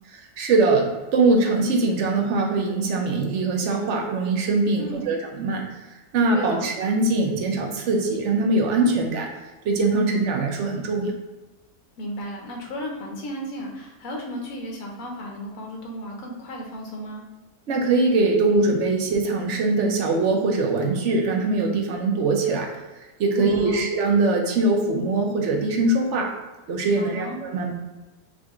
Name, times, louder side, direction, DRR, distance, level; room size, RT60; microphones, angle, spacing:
voice 1, 0.1-9.3 9.6-11.1 17.7-22.7 23.2-26.3 26.7-27.7, right 3 dB, 60° right, 1 dB, 0.9 m, -22 dB
voice 2, 4.8-5.1 6.3-6.6 12.0-17.2 23.3-23.9 27.0-27.4, equal, 65° left, 0 dB, 1.3 m, -34 dB
4.9 x 2.5 x 3.7 m, 1.2 s
omnidirectional pair, 1.6 m